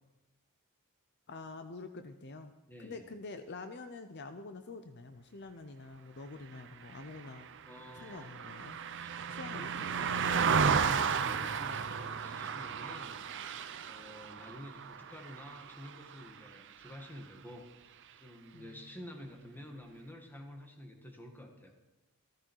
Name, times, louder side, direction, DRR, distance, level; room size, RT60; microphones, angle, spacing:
voice 1, 1.3-2.5 2.8-7.5 8.0-8.8 9.3-10.3 18.5-19.0, left 3 dB, 50° left, 9 dB, 0.7 m, -47 dB
voice 2, 2.7-3.1 7.7-8.3 9.0-13.2 13.8-17.7 18.2-21.9, left 1 dB, 10° left, 3 dB, 1.9 m, -50 dB
Car passing by, 6.9-16.5 16.9-17.1, right 6 dB, 55° right, 0.7 m, -34 dB
15.0 x 14.0 x 4.7 m, 1.1 s
head